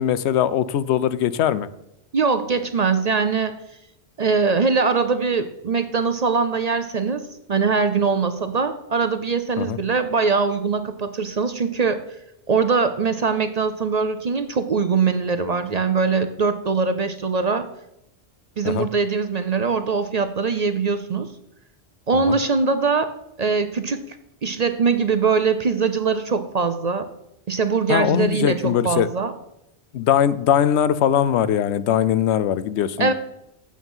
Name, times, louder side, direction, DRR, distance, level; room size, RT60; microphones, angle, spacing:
voice 1, 0.0-1.7 9.6-9.8 18.6-18.9 22.1-22.4 27.9-29.1 29.9-33.1, left 10 dB, 80° left, 16 dB, 0.8 m, -21 dB
voice 2, 2.1-3.5 4.2-12.0 12.5-17.7 18.6-21.3 22.1-23.1 23.4-24.2 24.4-27.1 27.5-29.3 33.0-33.1, right 5 dB, 45° right, 10 dB, 0.6 m, -22 dB
8.5 x 7.2 x 5.5 m, 0.83 s
omnidirectional pair, 1.1 m